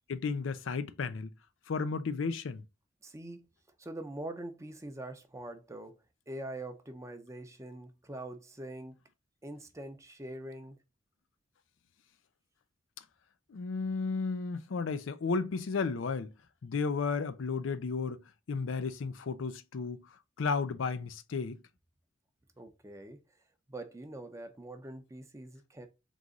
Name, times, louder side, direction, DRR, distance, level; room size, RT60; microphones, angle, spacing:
voice 1, 0.1-1.3 1.7-2.6 13.5-16.3 16.6-18.2 18.5-20.0 20.4-21.6, left 4 dB, 80° left, 0.5 m, -33 dB
voice 2, 3.0-3.5 3.8-6.0 6.3-8.9 9.4-10.8 22.6-23.2 23.7-25.9, right 1 dB, 15° right, 0.6 m, -44 dB
3.9 x 3.0 x 3.6 m
head